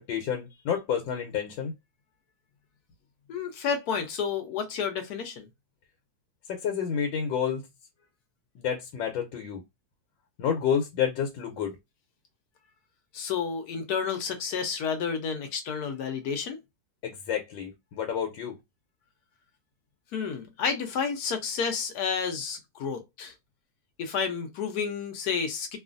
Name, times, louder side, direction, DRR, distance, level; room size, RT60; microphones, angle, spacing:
voice 1, 0.0-1.7 6.5-7.7 8.5-9.6 10.4-11.8 17.0-18.5, left 8 dB, 90° left, 1.4 m, -29 dB
voice 2, 3.3-5.5 13.1-16.6 20.1-23.3 24.0-25.8, left 6 dB, 65° left, 1.1 m, -30 dB
3.0 x 2.4 x 2.5 m
omnidirectional pair, 2.0 m